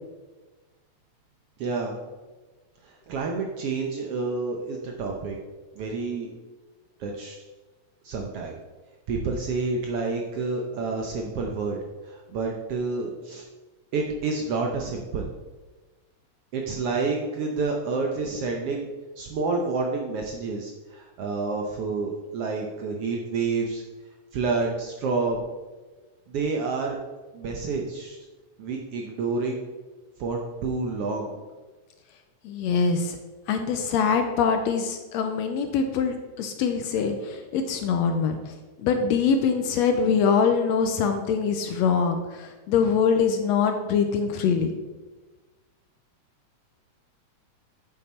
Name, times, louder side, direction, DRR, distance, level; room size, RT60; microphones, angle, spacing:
voice 1, 1.6-2.0 2.8-5.4 5.7-6.3 7.0-7.4 8.0-8.6 9.1-11.8 12.0-13.4 13.9-15.3 16.5-18.9 19.2-23.8 24.3-25.4 26.3-27.0 27.3-28.2 28.6-29.6 30.2-31.4, right 4 dB, 70° right, 1 dB, 1.5 m, -29 dB
voice 2, 32.4-33.2 33.5-38.3 38.8-44.7, left 6 dB, 75° left, 6 dB, 1.7 m, -23 dB
8.6 x 7.4 x 4.3 m, 1.2 s
omnidirectional pair, 3.5 m